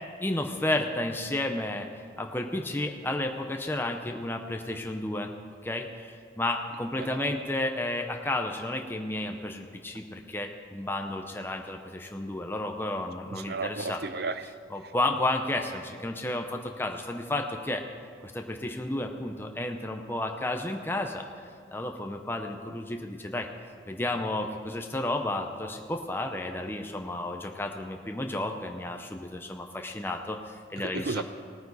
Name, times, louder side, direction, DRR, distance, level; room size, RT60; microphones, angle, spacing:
voice 1, 0.2-1.9 2.2-5.3 5.6-14.0 14.7-17.8 18.2-21.2 21.7-23.5 23.9-31.2, left 1 dB, 10° left, 3 dB, 0.6 m, -32 dB
voice 2, 13.3-14.5 30.8-31.2, right 3 dB, 55° right, 12 dB, 0.5 m, -33 dB
19.0 x 9.4 x 4.1 m, 2.1 s
head